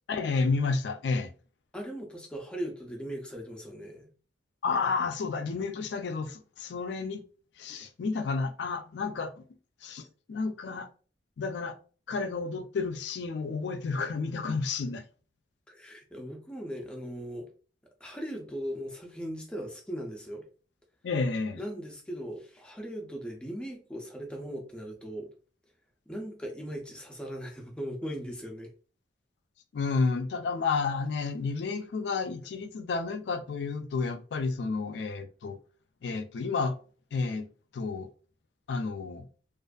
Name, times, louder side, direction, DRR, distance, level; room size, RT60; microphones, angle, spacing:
voice 1, 0.1-1.3 4.6-7.2 7.6-9.3 9.8-10.9 11.4-11.8 12.1-15.0 21.0-21.6 29.7-35.6 36.0-36.8 37.1-38.1 38.7-39.3, left 4 dB, 70° left, 0.4 m, -31 dB
voice 2, 1.7-4.1 15.7-17.5 18.0-20.4 21.5-25.3 26.1-28.7, equal, 5° left, 0.5 m, -39 dB
2.4 x 2.4 x 2.3 m
head